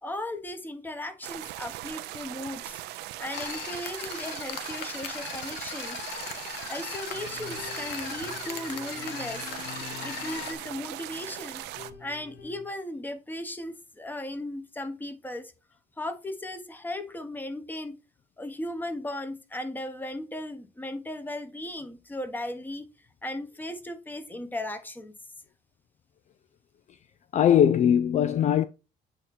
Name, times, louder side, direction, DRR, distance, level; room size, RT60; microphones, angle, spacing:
voice 1, 0.0-2.8 3.2-6.0 6.7-9.4 10.0-11.6 12.0-15.5 16.0-18.0 18.4-22.8 23.2-25.1, left 1 dB, 10° left, 1.2 m, -36 dB
sound 1, 1.2-11.9, right 15 dB, 85° right, 0.6 m, -39 dB
sound 2, 3.3-10.5, left 8 dB, 90° left, 1.0 m, -38 dB
sound 3, 7.1-12.7, left 6 dB, 70° left, 1.8 m, -47 dB
voice 2, 27.3-28.6, left 9 dB, 45° left, 0.4 m, -20 dB
8.9 x 3.0 x 4.3 m
cardioid pair, 110°, 17 cm